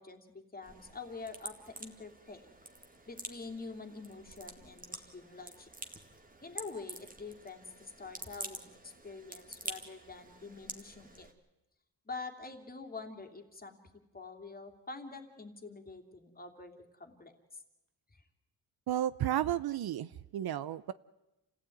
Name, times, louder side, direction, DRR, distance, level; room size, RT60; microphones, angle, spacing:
voice 1, 0.0-2.5 3.1-5.7 6.4-11.3 12.0-13.8 14.1-17.6 18.1-18.2, left 4 dB, 20° left, 5 dB, 2.8 m, -46 dB
sound 1, 0.6-11.3, right 2 dB, 20° right, 2.2 m, -48 dB
voice 2, 18.9-20.9, right 11 dB, 60° right, 16 dB, 0.8 m, -33 dB
29.0 x 16.0 x 9.3 m, 0.98 s
cardioid pair, 125°, 42 cm